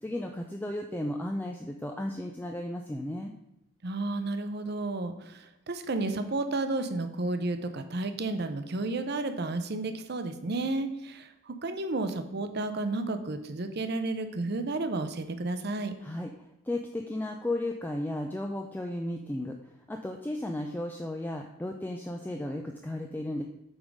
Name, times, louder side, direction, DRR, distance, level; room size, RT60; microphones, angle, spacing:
voice 1, 0.0-3.3 16.0-19.6 19.9-23.4, left 1 dB, 10° left, 3 dB, 0.3 m, -34 dB
voice 2, 3.8-15.9, right 2 dB, 50° right, 8 dB, 0.6 m, -32 dB
8.0 x 3.7 x 5.2 m, 0.86 s
head